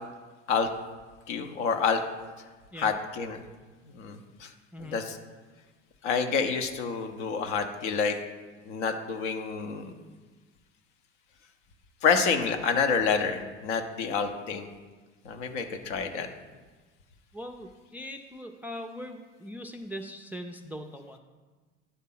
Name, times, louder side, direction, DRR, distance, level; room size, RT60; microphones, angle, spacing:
voice 1, 1.3-2.0 2.8-3.4 3.9-4.5 4.8-5.2 6.0-8.2 8.7-9.9 12.0-14.7 15.2-16.3, left 5 dB, 65° left, 6 dB, 0.9 m, -28 dB
voice 2, 4.7-5.0 17.3-21.2, equal, 5° right, 5 dB, 0.3 m, -41 dB
9.7 x 3.6 x 5.6 m, 1.3 s
hypercardioid pair, 70°, 38 cm